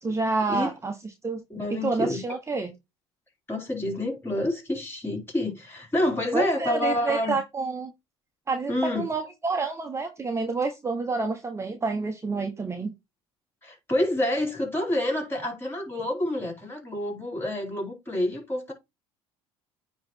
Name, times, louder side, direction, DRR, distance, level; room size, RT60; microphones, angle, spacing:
voice 1, 0.0-0.9 1.2-1.4 1.8-2.7 6.3-7.9 8.5-12.9, right 3 dB, 20° right, 1.1 m, -28 dB
voice 2, 1.5-2.4 3.5-7.4 8.7-9.1 13.6-18.7, left 1 dB, 20° left, 4.2 m, -28 dB
9.2 x 3.2 x 4.4 m
supercardioid pair, 80°, 13 cm